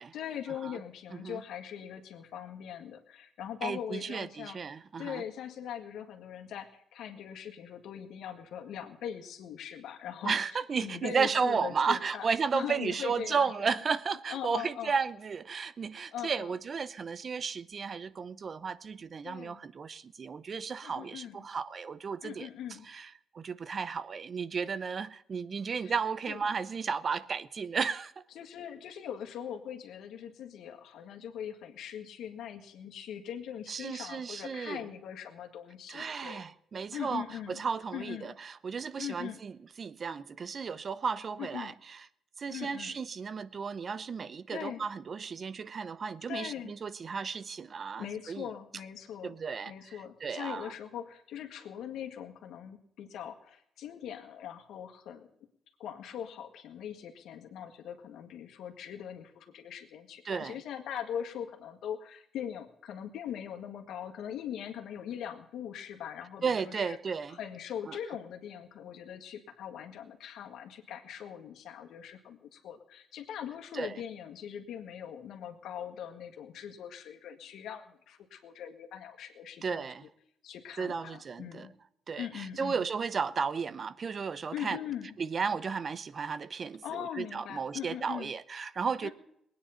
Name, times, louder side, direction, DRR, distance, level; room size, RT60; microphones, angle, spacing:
voice 1, 0.1-4.6 5.0-12.3 12.5-13.8 14.3-15.0 16.1-16.5 19.2-19.6 20.8-21.5 22.2-22.9 25.8-26.0 26.3-26.4 28.3-36.4 36.9-37.6 37.9-38.4 39.0-39.4 41.4-41.7 42.5-43.0 44.5-44.8 46.3-46.7 48.0-49.4 49.7-55.3 55.8-67.0 67.3-80.1 80.4-81.7 82.2-82.9 84.5-85.2 86.8-88.3 89.0-89.1, left 9 dB, 80° left, 1.8 m, -41 dB
voice 2, 3.6-5.2 10.2-22.5 22.9-23.1 23.3-28.1 33.7-34.8 35.9-39.5 39.8-42.0 42.4-48.4 49.2-50.7 60.3-60.6 66.4-67.4 67.9-68.0 73.7-74.0 79.6-80.1 80.8-81.7 82.1-84.8 85.2-89.1, right 5 dB, 45° right, 0.7 m, -34 dB
19.5 x 9.5 x 5.7 m
cardioid pair, 90°, 0 cm